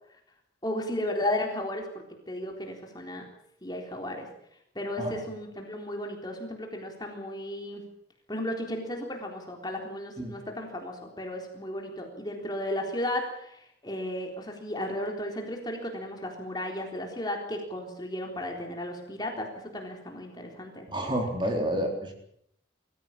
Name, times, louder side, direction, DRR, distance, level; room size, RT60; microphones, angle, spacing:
voice 1, 0.6-3.2 3.6-4.3 4.7-7.8 8.3-20.9, left 1 dB, 20° left, 2 dB, 3.9 m, -34 dB
voice 2, 20.9-22.1, right 1 dB, 25° right, 2 dB, 3.8 m, -29 dB
23.5 x 15.0 x 8.8 m, 0.72 s
head